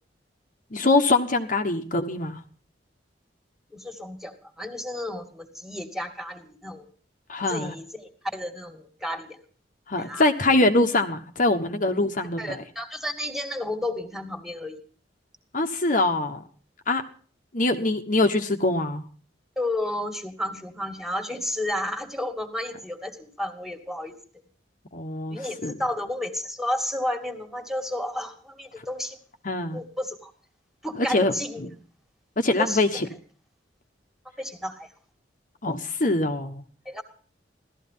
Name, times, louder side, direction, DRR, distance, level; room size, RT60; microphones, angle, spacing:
voice 1, 0.7-2.4 7.3-7.7 9.9-12.6 15.5-16.4 16.9-17.0 17.5-19.0 24.9-25.7 29.4-29.8 31.1-31.3 32.4-33.1 35.6-36.6, left 2 dB, 45° left, 5 dB, 1.4 m, -23 dB
voice 2, 3.7-6.9 7.5-9.4 10.0-10.3 12.4-14.8 19.6-24.1 25.3-29.2 29.7-30.3 30.8-31.6 32.6-32.8 34.4-34.9 36.9-37.0, left 1 dB, ahead, 6 dB, 2.3 m, -32 dB
17.0 x 13.5 x 5.7 m, 0.43 s
head